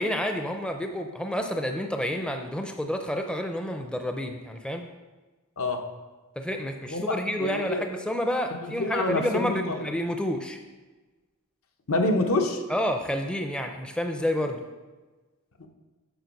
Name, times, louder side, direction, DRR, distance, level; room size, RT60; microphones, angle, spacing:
voice 1, 0.0-4.9 6.4-10.6 12.7-14.6, equal, 5° left, 4 dB, 0.5 m, -29 dB
voice 2, 6.8-7.9 8.6-9.8 11.9-12.6 15.6-15.7, left 2 dB, 70° left, 4 dB, 1.0 m, -27 dB
9.1 x 6.2 x 5.3 m, 1.2 s
head